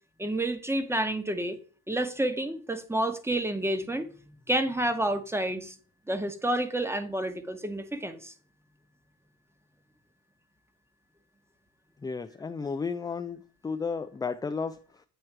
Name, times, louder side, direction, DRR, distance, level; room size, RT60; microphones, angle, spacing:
voice 1, 0.2-1.6 1.9-4.1 4.5-5.7 6.1-8.3, right 1 dB, 5° right, 1.0 m, -29 dB
voice 2, 12.0-13.4 13.6-14.8, left 5 dB, 10° left, 0.3 m, -32 dB
9.0 x 3.1 x 4.6 m
hypercardioid pair, 60°, 38 cm